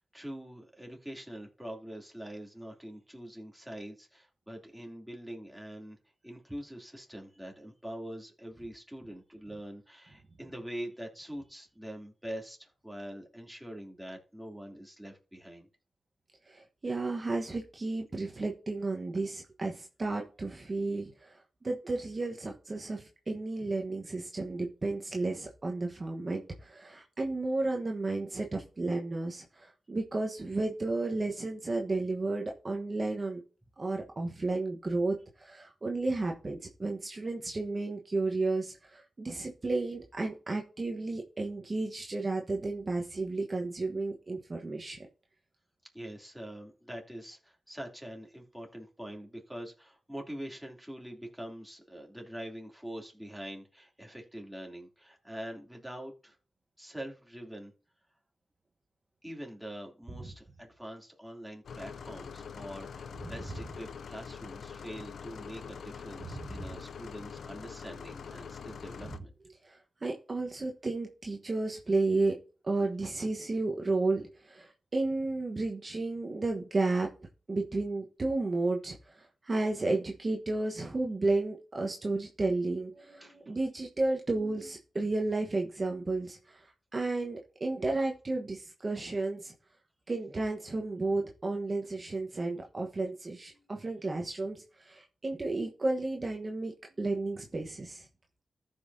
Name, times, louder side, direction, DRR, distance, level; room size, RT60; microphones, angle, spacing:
voice 1, 0.0-6.0 6.2-15.7 45.9-56.4 56.8-57.7 59.2-69.3 83.2-83.6, equal, 5° right, 0 dB, 2.7 m, -44 dB
voice 2, 16.5-21.4 21.6-33.4 33.8-45.0 66.3-66.6 69.6-72.4 72.6-77.1 77.5-89.5 90.1-98.0, right 2 dB, 45° right, 1 dB, 1.1 m, -32 dB
sound 1, 61.6-69.2, left 6 dB, 80° left, 0.5 m, -44 dB
14.0 x 5.5 x 2.7 m, 0.36 s
cardioid pair, 45°, 0 cm